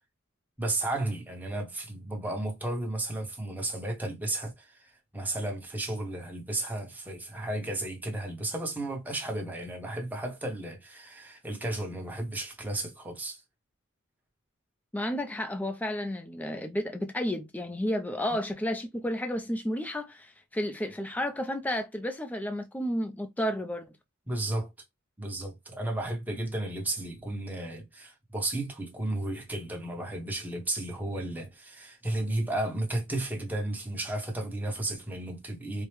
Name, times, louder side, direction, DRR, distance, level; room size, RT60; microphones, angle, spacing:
voice 1, 0.6-13.4 24.3-24.7 25.2-35.9, right 1 dB, 10° right, 0.9 m, -33 dB
voice 2, 14.9-23.9, equal, 10° left, 0.4 m, -32 dB
4.5 x 2.1 x 3.1 m
head